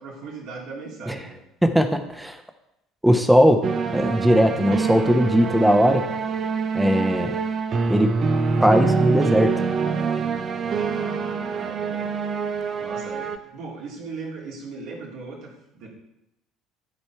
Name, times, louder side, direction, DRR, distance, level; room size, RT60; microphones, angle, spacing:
voice 1, 0.0-1.4 10.6-12.1 12.8-15.9, right 4 dB, 55° right, -1 dB, 2.3 m, -38 dB
voice 2, 1.6-2.4 3.0-3.6 3.9-6.1 6.7-7.4 7.9-8.2 8.6-9.6, equal, 5° right, 8 dB, 1.0 m, -19 dB
sound 1, 3.6-13.4, right 5 dB, 35° right, 0.6 m, -25 dB
12.5 x 4.4 x 4.4 m, 0.86 s
figure-of-eight pair, 60°, 0 cm